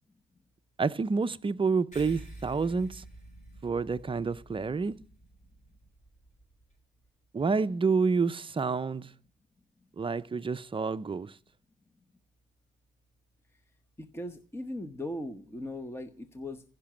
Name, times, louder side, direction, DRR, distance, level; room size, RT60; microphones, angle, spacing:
voice 1, 0.8-3.0 3.6-4.9 7.3-9.1 10.0-11.3, right 4 dB, 25° right, 0.6 m, -28 dB
sound 1, 1.9-6.8, right 1 dB, 35° left, 6.1 m, -49 dB
voice 2, 14.0-16.6, left 1 dB, 10° left, 1.0 m, -38 dB
15.5 x 6.0 x 8.8 m
cardioid pair, 95°, 21 cm